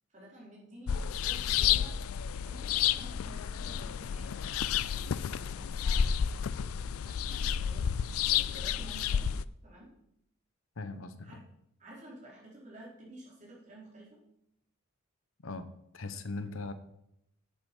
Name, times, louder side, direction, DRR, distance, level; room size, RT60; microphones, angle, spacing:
voice 1, 0.1-1.9 2.4-4.4 4.7-6.3 6.6-7.9 8.3-9.9 11.2-11.4 11.8-14.2, right 1 dB, 35° right, -4 dB, 4.6 m, -52 dB
sound 1, 0.9-9.4, left 8 dB, 85° left, 0.4 m, -31 dB
voice 2, 10.8-11.4 15.4-15.7 15.9-16.7, left 3 dB, 70° left, 11 dB, 0.9 m, -39 dB
11.0 x 8.2 x 5.6 m, 0.78 s
head